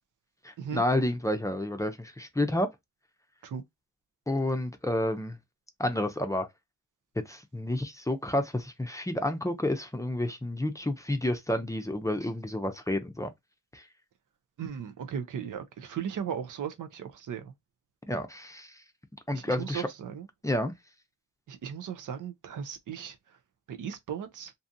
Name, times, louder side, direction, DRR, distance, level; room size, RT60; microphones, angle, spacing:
voice 1, 0.4-2.7 4.3-5.4 5.8-6.5 7.3-13.3 13.7-13.9 18.1-18.8 19.3-19.9 20.4-20.7, left 1 dB, 10° left, 0.5 m, -30 dB
voice 2, 14.6-17.5 19.3-20.3 21.5-23.2 23.7-24.5, right 8 dB, 75° right, 0.6 m, -37 dB
2.6 x 2.4 x 2.6 m
cardioid pair, 70°, 31 cm